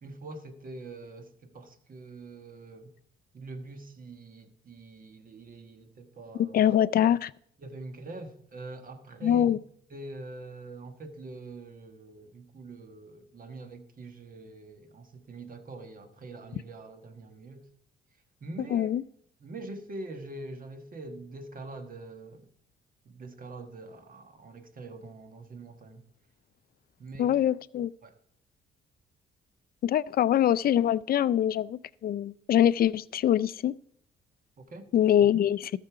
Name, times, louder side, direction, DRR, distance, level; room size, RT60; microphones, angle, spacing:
voice 1, 0.0-2.9 3.3-6.7 7.6-9.6 9.9-17.7 18.4-18.9 19.4-22.5 23.0-26.0 27.0-27.4 28.0-28.2 34.6-34.9, right 2 dB, 45° right, 1.4 m, -44 dB
voice 2, 6.5-7.3 9.2-9.6 18.7-19.0 27.2-27.9 29.8-33.7 34.9-35.7, left 10 dB, 50° left, 0.4 m, -24 dB
13.5 x 6.6 x 4.8 m
cardioid pair, 90°, 20 cm